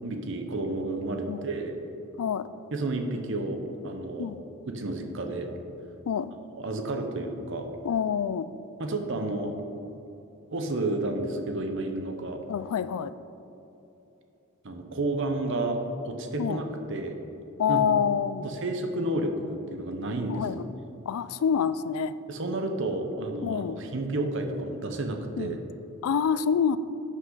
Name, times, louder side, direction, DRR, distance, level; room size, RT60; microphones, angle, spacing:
voice 1, 0.0-1.8 2.7-4.3 4.7-5.5 6.5-7.7 8.8-9.5 9.8-9.9 10.5-12.4 14.6-15.8 16.0-16.6 16.9-17.2 17.7-17.8 18.4-20.5 22.3-25.6, right 2 dB, 60° right, 4 dB, 0.8 m, -31 dB
voice 2, 7.8-8.5 12.5-13.1 16.4-16.6 17.6-18.5 20.3-20.7 21.1-22.1 23.4-23.8 25.4-25.6 26.0-26.8, left 7 dB, 80° left, 15 dB, 0.3 m, -26 dB
11.0 x 5.5 x 3.9 m, 3.0 s
head